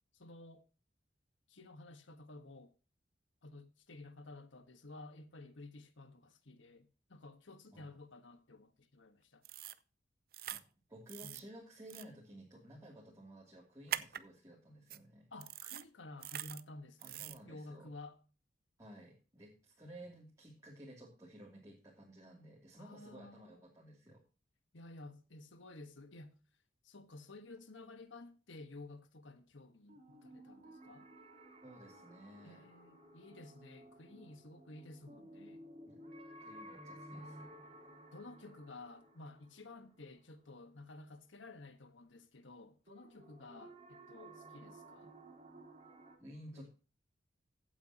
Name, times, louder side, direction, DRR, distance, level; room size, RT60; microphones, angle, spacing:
voice 1, 0.1-0.7 1.5-2.7 3.4-9.5 11.2-11.4 15.3-18.2 22.8-23.7 24.7-26.4 26.8-31.1 32.4-35.6 38.1-45.1 46.5-46.7, left 2 dB, 80° left, 1.5 m, -53 dB
sound 1, 9.4-9.8 10.3-10.6 11.1-11.4 11.9-12.0 13.9-14.2 14.9-15.0 15.4-15.8 16.2-16.6 17.0-17.4, right 11 dB, 50° right, 0.6 m, -42 dB
voice 2, 10.9-15.3 17.0-17.9 18.8-24.2 31.6-32.7 35.9-36.0 36.4-37.5 46.2-46.7, right 1 dB, 15° right, 2.8 m, -54 dB
sound 2, 29.9-40.8 42.9-46.2, right 1 dB, 35° right, 3.3 m, -55 dB
15.5 x 8.9 x 2.9 m
head